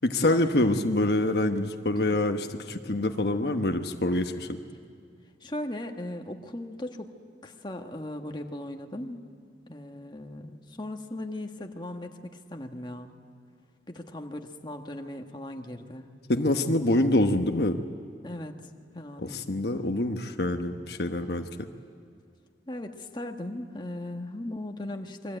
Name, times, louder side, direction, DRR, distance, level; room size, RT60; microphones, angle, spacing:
voice 1, 0.0-4.6 16.3-17.8 19.2-21.7, left 1 dB, 60° left, 5 dB, 1.1 m, -26 dB
voice 2, 5.4-7.1 7.4-9.2 9.7-13.1 13.9-16.1 16.7-17.0 18.2-18.6 18.9-19.4 19.7-19.9 22.7-25.4, left 1 dB, 25° left, 4 dB, 1.5 m, -38 dB
28.5 x 23.0 x 9.0 m, 2.3 s
head